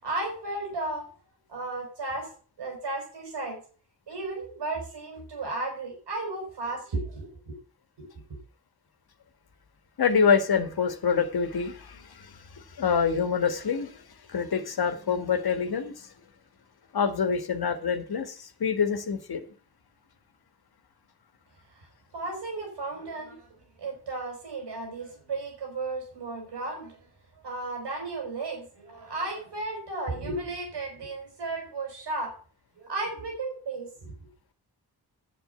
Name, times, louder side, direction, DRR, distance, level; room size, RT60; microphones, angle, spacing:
voice 1, 0.0-1.1 1.5-2.3 2.6-3.6 4.1-7.6 8.0-8.1 21.7-21.9 22.1-27.1 27.4-32.3 32.8-34.1, right 2 dB, 85° right, 2 dB, 5.2 m, -34 dB
voice 2, 10.0-14.0 14.3-16.1 16.9-19.5, left 6 dB, 65° left, 9 dB, 1.8 m, -26 dB
9.2 x 7.7 x 8.1 m, 0.41 s
supercardioid pair, 45°, 40 cm